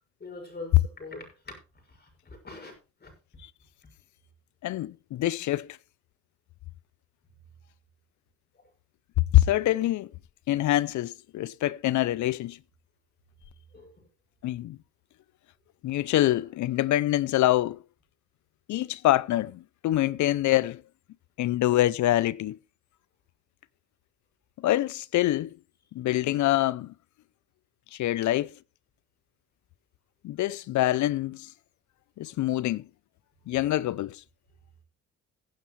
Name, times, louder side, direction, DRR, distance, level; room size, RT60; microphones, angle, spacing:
voice 1, 0.2-1.5 1.9-2.7 3.0-3.1 8.5-8.6 13.7-14.1, left 3 dB, 35° left, 6.2 m, -43 dB
voice 2, 4.6-5.7 9.3-10.1 10.5-12.6 14.4-14.8 15.8-17.8 18.7-20.8 21.4-22.6 24.6-25.6 25.9-26.9 27.9-28.5 30.2-31.5 32.2-32.9 33.5-34.2, left 15 dB, 70° left, 0.6 m, -25 dB
16.5 x 9.3 x 3.2 m
cardioid pair, 90°, 30 cm